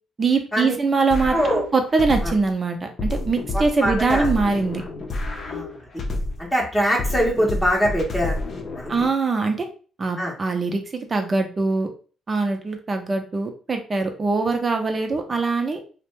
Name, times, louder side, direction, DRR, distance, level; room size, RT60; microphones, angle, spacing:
voice 1, 0.2-4.8 8.9-9.7 10.0-11.9 12.3-15.8, right 4 dB, 35° right, 4 dB, 0.6 m, -23 dB
sound 1, 1.1-2.5 3.0-6.5 7.0-9.1, left 2 dB, 50° left, 0.6 m, -29 dB
voice 2, 1.3-1.6 2.2-2.3 3.5-4.3 5.4-5.8 6.4-8.4 8.7-8.9 10.2-10.3, equal, 10° left, -1 dB, 0.8 m, -23 dB
2.6 x 2.1 x 3.1 m, 0.38 s
cardioid pair, 90°, 0 cm